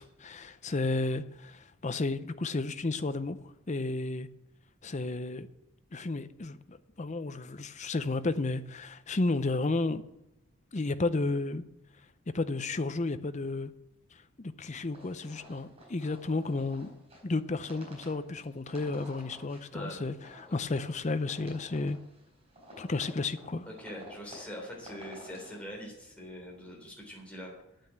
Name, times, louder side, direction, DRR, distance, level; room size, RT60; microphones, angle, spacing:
voice 1, 0.0-3.4 3.7-4.3 4.8-5.5 5.9-10.0 10.7-11.6 12.3-13.7 14.1-16.9 17.2-22.0 22.8-23.7, left 3 dB, 30° left, 0.6 m, -32 dB
sound 1, 14.9-25.6, equal, 30° right, 4.5 m, -52 dB
voice 2, 23.7-27.5, equal, 5° left, 3.7 m, -43 dB
9.3 x 9.0 x 7.9 m
head